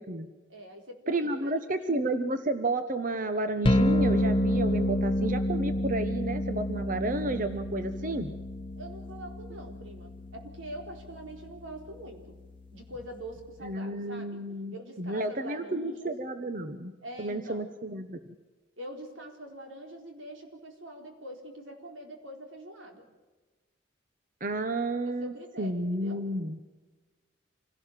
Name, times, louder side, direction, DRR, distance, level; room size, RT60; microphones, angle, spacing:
voice 1, 0.5-1.9 8.8-12.4 12.7-14.4 14.7-16.1 17.0-17.7 18.8-23.1 25.0-26.2, right 1 dB, 85° right, 3 dB, 4.2 m, -44 dB
voice 2, 1.1-8.3 13.6-16.9 17.2-18.2 24.4-26.6, right 2 dB, 45° right, 9 dB, 1.0 m, -31 dB
sound 1, 3.6-13.7, left 1 dB, 25° left, 0.9 m, -30 dB
26.0 x 17.5 x 7.5 m, 1.3 s
head